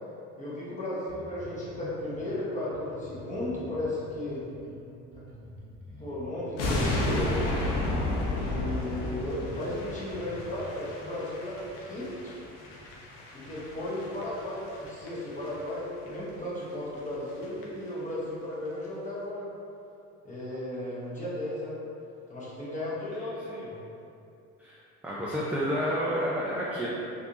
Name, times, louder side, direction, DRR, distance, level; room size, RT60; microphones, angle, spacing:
voice 1, 0.4-4.5 5.1-5.2 6.0-7.4 8.3-12.4 13.3-19.5 20.2-21.8 22.3-23.7, left 1 dB, 20° left, -8 dB, 1.2 m, -35 dB
Bass guitar, 1.1-10.7, equal, 80° right, 0.8 m, -47 dB
sound 1, 6.6-15.7 16.0-16.2 16.6-16.7 17.0-17.1 17.3-17.6 17.9-18.0, left 1 dB, 75° left, 0.7 m, -33 dB
voice 2, 25.0-26.9, equal, 5° right, -7 dB, 0.4 m, -30 dB
3.2 x 2.7 x 2.9 m, 2.7 s
supercardioid pair, 85°, 34 cm